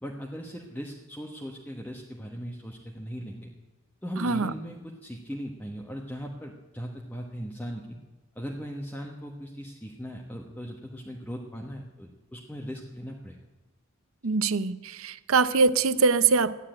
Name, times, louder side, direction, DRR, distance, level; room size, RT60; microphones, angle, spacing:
voice 1, 0.0-3.5 4.0-7.9 8.3-13.4, equal, 5° left, -1 dB, 1.1 m, -38 dB
voice 2, 4.2-4.5 14.2-16.5, right 4 dB, 70° right, 15 dB, 0.7 m, -23 dB
14.5 x 9.9 x 8.8 m, 1.2 s
head